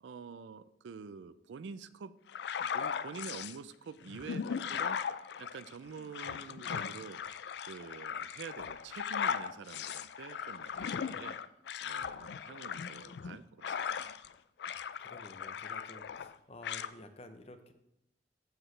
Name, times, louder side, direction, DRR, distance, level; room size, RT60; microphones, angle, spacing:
voice 1, 0.0-2.1 2.6-7.2 7.7-11.4 11.8-13.8, right 5 dB, 85° right, 15 dB, 0.4 m, -47 dB
sound 1, 2.3-3.6 4.1-14.3 14.6-16.3 16.6-16.9, left 7 dB, 70° left, 0.3 m, -38 dB
voice 2, 14.7-17.7, left 1 dB, 35° left, 7 dB, 0.7 m, -52 dB
13.5 x 4.9 x 3.2 m, 0.81 s
head